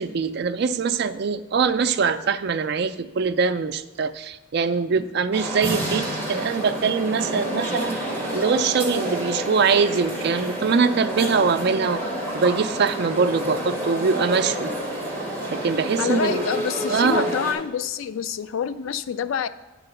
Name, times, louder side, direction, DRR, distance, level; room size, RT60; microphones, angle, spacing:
voice 1, 0.0-8.0 8.3-12.1 12.3-14.7 15.5-16.4 16.9-17.3, right 5 dB, 55° right, 11 dB, 0.4 m, -23 dB
sound 1, 5.3-17.5, equal, 10° left, 2.0 m, -29 dB
voice 2, 16.0-19.5, left 7 dB, 85° left, 14 dB, 0.3 m, -27 dB
9.9 x 3.8 x 6.9 m, 1.1 s
head